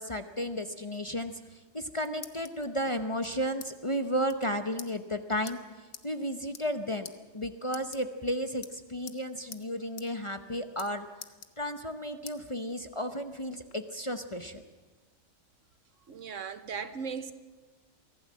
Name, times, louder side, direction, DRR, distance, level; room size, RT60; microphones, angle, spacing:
voice 1, 0.0-1.3 1.7-5.6 6.0-11.0 11.6-14.6, equal, 25° left, 0.8 m, -33 dB
sound 1, 1.6-2.7 3.2-3.7 4.0-4.1 4.3-4.5 4.8-4.9 5.5-5.6 5.9-6.1 6.4-6.8 7.0-7.2 7.7-8.3 8.6-9.2 9.5-9.6 10.0-10.1 10.4-10.9 11.2-11.9 12.3-12.4 12.9-13.8, left 8 dB, 70° left, 1.4 m, -46 dB
voice 2, 16.1-17.3, right 6 dB, 70° right, 1.3 m, -37 dB
24.0 x 16.0 x 7.5 m
omnidirectional pair, 1.4 m